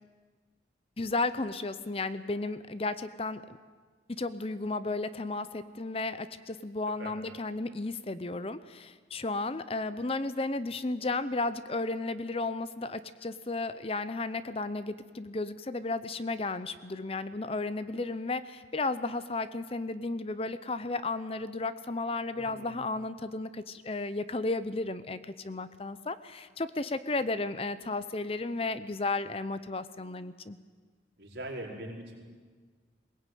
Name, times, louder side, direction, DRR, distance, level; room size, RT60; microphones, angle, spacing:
voice 1, 1.0-3.4 4.1-30.6, left 3 dB, 30° left, 14 dB, 0.7 m, -33 dB
voice 2, 22.4-22.8 31.2-32.2, right 1 dB, 65° right, -1 dB, 4.6 m, -41 dB
21.5 x 18.0 x 9.3 m, 1.5 s
head